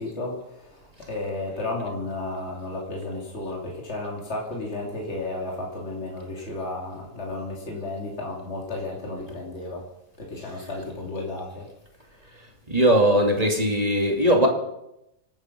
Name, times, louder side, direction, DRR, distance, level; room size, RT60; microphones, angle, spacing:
voice 1, 0.0-9.8 10.2-11.7, left 2 dB, 50° left, 3.1 m, -33 dB
voice 2, 12.7-14.5, equal, 25° right, 2.6 m, -19 dB
26.5 x 9.1 x 6.0 m
omnidirectional pair, 1.5 m